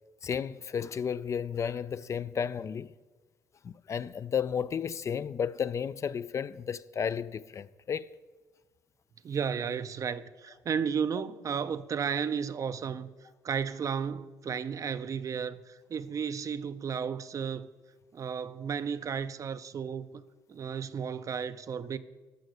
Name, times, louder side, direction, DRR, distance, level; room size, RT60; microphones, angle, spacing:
voice 1, 0.2-2.9 3.6-8.1, left 7 dB, 40° left, 0.4 m, -33 dB
voice 2, 9.2-13.1 13.4-17.7 18.1-20.2 20.5-22.0, right 7 dB, 45° right, 0.5 m, -33 dB
12.5 x 6.3 x 6.5 m
cardioid pair, 85°, 8 cm